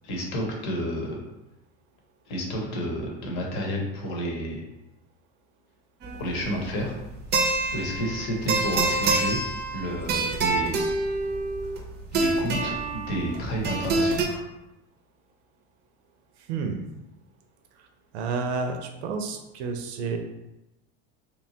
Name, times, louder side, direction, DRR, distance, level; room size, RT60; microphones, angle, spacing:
voice 1, 0.0-1.2 2.3-4.6 6.2-7.0 7.7-9.4 9.7-10.8 12.1-14.5, equal, 60° left, -1 dB, 1.0 m, -30 dB
sound 1, 6.0-14.3, right 3 dB, 30° right, 0.4 m, -27 dB
voice 2, 16.5-16.8 18.1-20.2, right 4 dB, 85° right, 5 dB, 0.5 m, -30 dB
2.9 x 2.2 x 2.7 m, 0.93 s
supercardioid pair, 110°, 33 cm